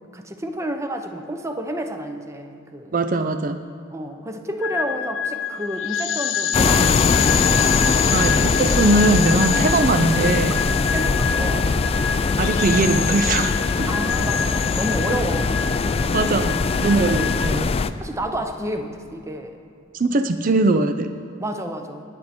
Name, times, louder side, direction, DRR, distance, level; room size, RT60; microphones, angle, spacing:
voice 1, 0.1-2.9 3.9-8.5 9.5-9.9 10.9-11.7 13.9-16.5 17.0-17.3 18.0-19.6 21.4-22.0, right 1 dB, 15° right, 5 dB, 0.8 m, -31 dB
voice 2, 2.9-3.6 8.1-10.6 12.4-13.9 16.1-17.7 19.9-21.1, right 2 dB, 45° right, 9 dB, 0.5 m, -21 dB
sound 1, 4.6-17.6, left 7 dB, 75° left, 0.7 m, -26 dB
sound 2, 6.5-17.9, left 4 dB, 30° left, 0.3 m, -22 dB
sound 3, 7.5-8.6 8.9-9.3 10.5-11.6, equal, 70° right, 3.0 m, -34 dB
19.0 x 8.1 x 4.3 m, 2.6 s
head